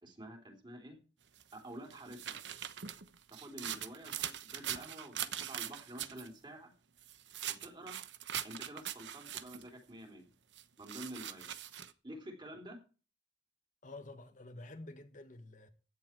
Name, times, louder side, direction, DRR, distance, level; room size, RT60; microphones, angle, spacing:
voice 1, 0.0-1.0 1.5-2.4 3.3-6.7 7.4-8.0 8.4-10.3 10.8-11.5 12.0-12.8, right 1 dB, 25° right, 3.6 m, -49 dB
sound 1, 1.4-6.3 7.0-9.7 10.6-11.9, right 10 dB, 70° right, 1.0 m, -42 dB
voice 2, 13.8-15.7, left 2 dB, 45° left, 1.3 m, -49 dB
15.5 x 10.5 x 4.6 m
head